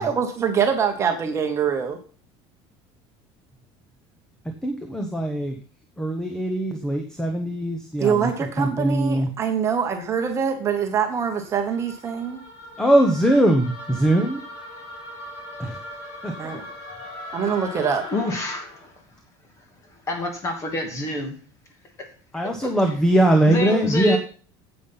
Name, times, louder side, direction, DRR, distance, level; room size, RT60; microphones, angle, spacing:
voice 1, 0.0-2.0 8.0-12.4 16.4-16.6 17.3-18.0, right 7 dB, 25° right, 4 dB, 1.2 m, -24 dB
voice 2, 4.6-5.6 6.0-8.3 8.6-9.3 12.8-14.4 15.6-15.8 16.2-16.6 22.3-24.2, right 1 dB, 5° left, 4 dB, 1.0 m, -21 dB
sound 1, 11.7-19.0, left 1 dB, 65° left, 4.2 m, -39 dB
voice 3, 18.1-18.7 20.1-21.4 22.3-22.7 23.5-24.2, left 1 dB, 25° left, 4 dB, 2.4 m, -27 dB
9.4 x 8.1 x 5.6 m, 0.41 s
cardioid pair, 180°, 12 cm